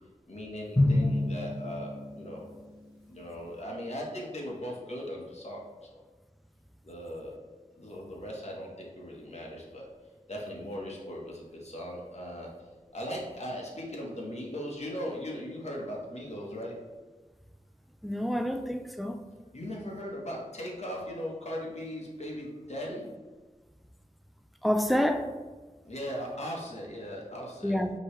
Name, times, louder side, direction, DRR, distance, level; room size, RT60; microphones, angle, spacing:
voice 1, 0.3-2.5 3.1-6.0 6.8-7.4 7.7-9.9 10.3-12.5 12.9-16.8 19.5-23.1 25.8-27.8, equal, 50° left, -2 dB, 1.2 m, -38 dB
Drum, 0.8-2.9, left 1 dB, 30° left, 1.3 m, -28 dB
voice 2, 18.0-19.2 24.6-25.3 27.6-27.9, equal, ahead, 7 dB, 0.4 m, -27 dB
5.2 x 3.0 x 3.2 m, 1.3 s
wide cardioid pair, 45°, 14 cm